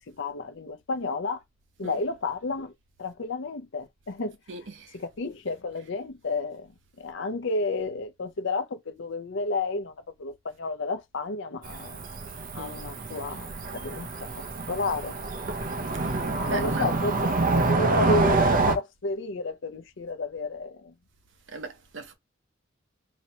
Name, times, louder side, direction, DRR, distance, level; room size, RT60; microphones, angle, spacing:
voice 1, 0.1-1.4 1.8-2.7 3.0-4.4 4.9-6.7 7.0-12.0 12.5-14.1 14.7-15.2 16.5-17.2 17.7-18.4 18.7-20.9, left 3 dB, 65° left, 0.6 m, -31 dB
voice 2, 4.5-4.9 12.6-12.7 16.0-16.9 21.5-22.1, right 3 dB, 65° right, 1.0 m, -39 dB
Cricket / Motor vehicle (road), 11.6-18.7, right 3 dB, 45° right, 0.7 m, -27 dB
2.9 x 2.8 x 4.2 m
head